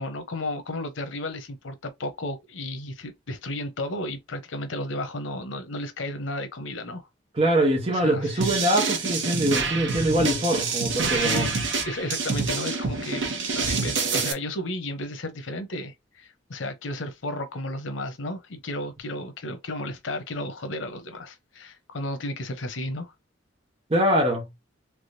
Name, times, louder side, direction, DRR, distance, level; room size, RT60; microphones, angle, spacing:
voice 1, 0.0-7.1 7.9-8.5 11.2-11.5 11.8-13.2 13.5-23.1, left 1 dB, 85° left, 0.8 m, -33 dB
voice 2, 7.3-11.5 23.9-24.4, right 1 dB, 30° right, 0.9 m, -23 dB
sound 1, 8.4-14.3, right 4 dB, 70° right, 0.9 m, -27 dB
3.5 x 3.0 x 2.6 m
head